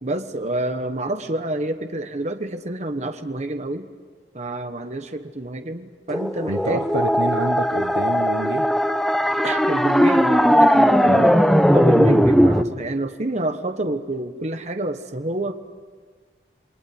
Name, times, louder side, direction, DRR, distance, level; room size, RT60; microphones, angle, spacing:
voice 1, 0.0-3.9 4.3-6.8 9.4-11.4 11.7-15.5, right 1 dB, 40° right, 7 dB, 1.3 m, -28 dB
sound 1, 6.1-12.6, equal, ahead, 1.0 m, -18 dB
voice 2, 6.5-8.7 11.1-11.4, right 2 dB, 70° right, 6 dB, 1.1 m, -27 dB
28.5 x 21.0 x 9.5 m, 1.5 s
head